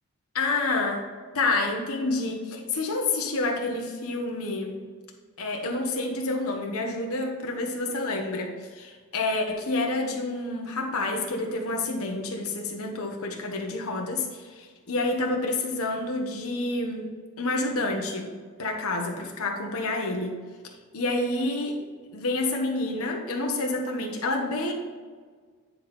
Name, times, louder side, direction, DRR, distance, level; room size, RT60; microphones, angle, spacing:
voice 1, 0.3-1.0 1.3-4.8 5.4-17.1 17.4-18.3 18.6-20.4 20.6-21.8 22.1-24.7, left 2 dB, 75° left, 1 dB, 1.2 m, -28 dB
9.5 x 4.1 x 4.3 m, 1.5 s
head